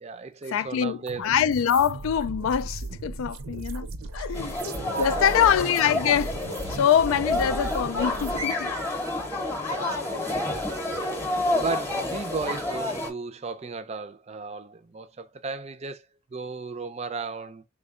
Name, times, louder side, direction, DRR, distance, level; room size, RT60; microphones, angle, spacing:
voice 1, 0.0-1.3 4.2-4.5 4.9-5.5 9.7-16.0 16.3-17.6, right 4 dB, 30° right, 0.4 m, -35 dB
voice 2, 0.5-3.9 4.1-4.6 5.0-6.4 6.7-8.7, left 8 dB, 75° left, 0.3 m, -24 dB
sound 1, 1.1-8.4, right 2 dB, 90° right, 0.7 m, -37 dB
sound 2, 4.3-13.1, left 2 dB, 10° left, 0.8 m, -29 dB
3.6 x 2.2 x 3.6 m
head